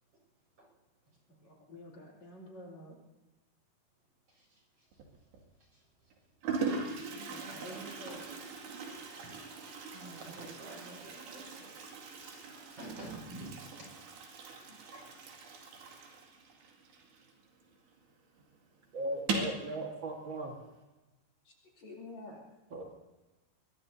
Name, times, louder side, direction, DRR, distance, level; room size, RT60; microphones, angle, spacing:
voice 1, 1.4-3.0 7.3-8.2 21.5-22.4, left 1 dB, 45° left, 0 dB, 3.6 m, -49 dB
voice 2, 4.3-5.0 5.6-6.1 6.4-8.2 8.9-15.3, right 2 dB, 35° right, 0 dB, 7.2 m, -51 dB
Toilet flush, 4.9-5.4 6.1-6.2 6.4-17.7 18.0-18.1 18.4-18.5 19.1-19.6, right 4 dB, 90° right, 4.4 m, -40 dB
voice 3, 18.9-20.5 22.7-22.9, right 1 dB, 60° right, 0 dB, 1.2 m, -37 dB
24.0 x 21.5 x 2.8 m, 1.1 s
omnidirectional pair, 4.8 m